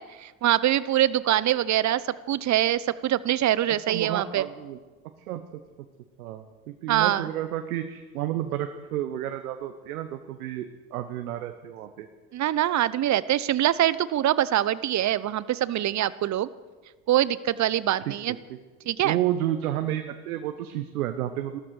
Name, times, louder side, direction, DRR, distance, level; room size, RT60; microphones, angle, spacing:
voice 1, 0.0-4.5 6.9-7.3 12.3-16.5 17.1-18.4 18.9-19.2, right 12 dB, 40° right, 18 dB, 0.8 m, -24 dB
voice 2, 3.9-4.8 5.2-5.6 6.2-12.1 18.5-18.6 19.0-21.6, right 12 dB, 85° right, 8 dB, 0.9 m, -31 dB
15.5 x 13.0 x 6.5 m, 1.3 s
hypercardioid pair, 65°, 43 cm